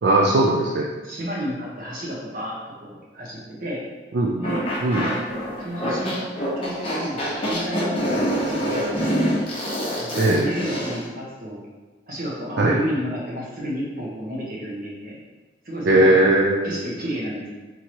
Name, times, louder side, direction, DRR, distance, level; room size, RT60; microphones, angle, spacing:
voice 1, 0.0-0.9 4.1-4.4 4.8-5.1 10.1-10.5 12.6-12.8 15.9-16.8, right 2 dB, 75° right, -3 dB, 0.4 m, -18 dB
voice 2, 1.0-3.8 4.3-4.6 5.6-6.3 6.5-9.2 10.0-11.6 12.1-15.2 15.6-16.1 16.6-17.5, equal, 50° right, -6 dB, 1.3 m, -31 dB
sound 1, 4.4-11.0, equal, 30° left, 1.1 m, -25 dB
4.5 x 3.7 x 3.0 m, 1.3 s
head